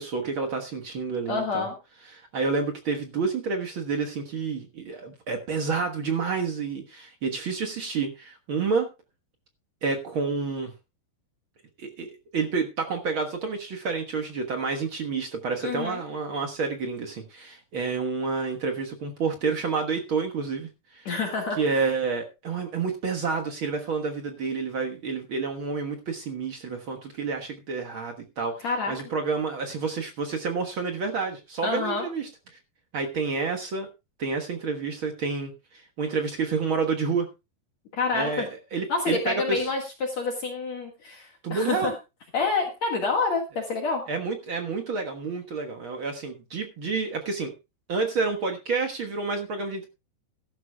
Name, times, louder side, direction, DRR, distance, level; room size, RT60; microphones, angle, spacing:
voice 1, 0.0-1.7 2.1-8.9 9.8-10.7 11.8-21.1 21.6-32.3 32.9-33.9 34.2-37.3 38.1-39.7 41.4-41.9 44.1-47.5 47.9-49.9, right 4 dB, 65° right, 3 dB, 1.2 m, -29 dB
voice 2, 1.3-1.8 15.6-16.1 21.1-21.8 28.6-28.9 31.6-32.1 37.9-38.5 38.9-41.9 42.3-44.0, left 4 dB, 50° left, 2 dB, 2.6 m, -28 dB
15.5 x 13.0 x 2.3 m, 0.26 s
omnidirectional pair, 4.5 m